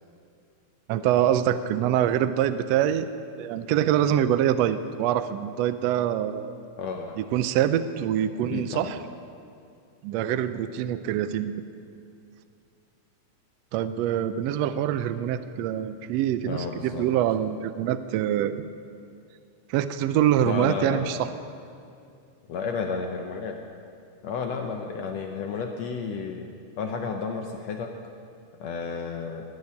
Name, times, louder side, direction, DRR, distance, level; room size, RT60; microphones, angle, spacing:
voice 1, 0.9-3.1 3.4-6.5 7.2-9.0 10.0-11.5 13.7-18.7 19.7-21.3, right 10 dB, 80° right, 11 dB, 1.5 m, -25 dB
voice 2, 6.8-7.2 8.5-8.9 16.4-17.1 20.4-21.3 22.5-23.6 24.2-26.4 26.8-27.9 28.6-29.4, left 5 dB, 70° left, 3 dB, 1.8 m, -32 dB
19.0 x 6.6 x 9.5 m, 2.5 s
omnidirectional pair, 3.6 m